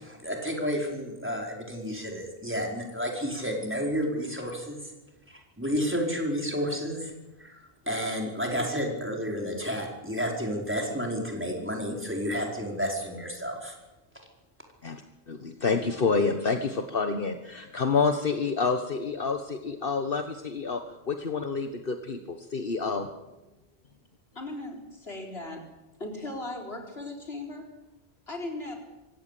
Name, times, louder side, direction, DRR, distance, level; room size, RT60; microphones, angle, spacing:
voice 1, 0.0-4.8 5.3-7.1 7.4-7.6 7.9-13.8, equal, 10° right, 0 dB, 5.0 m, -31 dB
voice 2, 15.3-23.1, left 4 dB, 60° left, 6 dB, 1.5 m, -28 dB
voice 3, 24.3-25.7 26.0-27.7 28.3-28.7, left 2 dB, 80° left, 2 dB, 4.5 m, -37 dB
25.5 x 16.5 x 8.6 m, 1.0 s
omnidirectional pair, 1.0 m